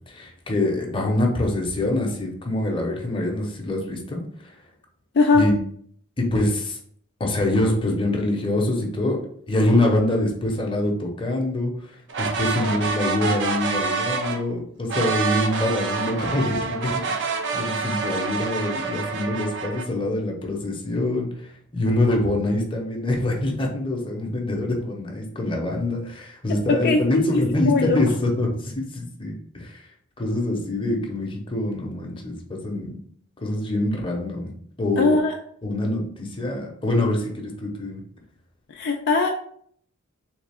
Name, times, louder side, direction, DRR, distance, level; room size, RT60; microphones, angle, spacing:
voice 1, 0.0-4.6 5.3-5.6 6.2-6.8 7.2-9.2 9.5-11.9 12.2-29.9 30.2-33.0 33.4-34.5 34.8-35.2 35.6-38.0, left 1 dB, 25° left, 1 dB, 0.7 m, -25 dB
sound 1, 12.1-14.4 14.9-19.9, right 4 dB, 55° right, 0.5 m, -27 dB
voice 2, 26.7-28.0 35.0-35.3 38.8-39.3, left 3 dB, 50° left, 2 dB, 0.4 m, -20 dB
3.4 x 3.3 x 3.4 m, 0.63 s
head